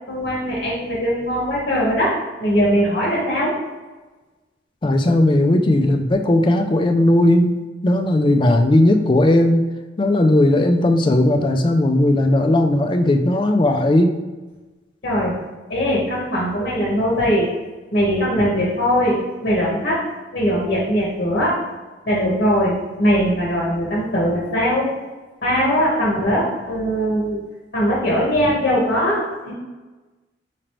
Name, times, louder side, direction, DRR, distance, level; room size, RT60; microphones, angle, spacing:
voice 1, 0.1-3.6 15.0-15.4 15.7-17.5 17.9-20.1 20.3-21.6 22.0-24.9 25.4-27.4 27.7-29.5, equal, 50° left, -6 dB, 1.1 m, -20 dB
voice 2, 4.8-9.7 10.0-14.2, left 1 dB, 25° left, 5 dB, 0.3 m, -16 dB
4.9 x 3.0 x 3.0 m, 1.2 s
head